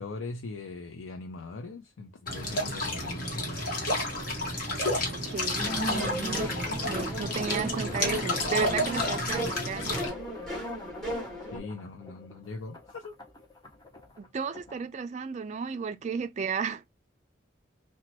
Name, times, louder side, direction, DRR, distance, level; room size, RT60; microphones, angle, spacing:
voice 1, 0.0-3.6 11.5-13.2, left 3 dB, 85° left, 0.4 m, -41 dB
sound 1, 2.3-10.1, left 1 dB, 50° left, 1.1 m, -31 dB
voice 2, 5.1-6.5 6.8-10.0 14.2-16.8, right 5 dB, 35° right, 0.3 m, -34 dB
sound 2, 5.2-14.8, left 3 dB, 20° left, 0.6 m, -48 dB
sound 3, 5.6-11.6, equal, 5° left, 1.1 m, -35 dB
2.9 x 2.2 x 2.9 m
head